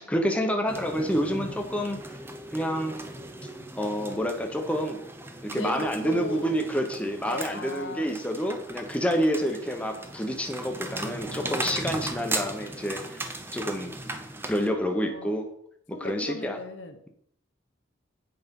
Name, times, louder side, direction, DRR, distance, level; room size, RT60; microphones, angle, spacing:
voice 1, 0.0-2.0 2.5-3.0 3.8-5.0 5.4-13.9 14.5-15.5 15.9-16.6, equal, 5° left, 3 dB, 1.0 m, -28 dB
sound 1, 0.7-14.7, right 2 dB, 10° right, 0.6 m, -38 dB
voice 2, 1.2-1.7 5.5-6.6 7.2-8.2 11.0-12.0 14.9-15.3 15.9-17.0, left 2 dB, 65° left, 7 dB, 0.9 m, -38 dB
8.5 x 5.4 x 5.4 m, 0.69 s
head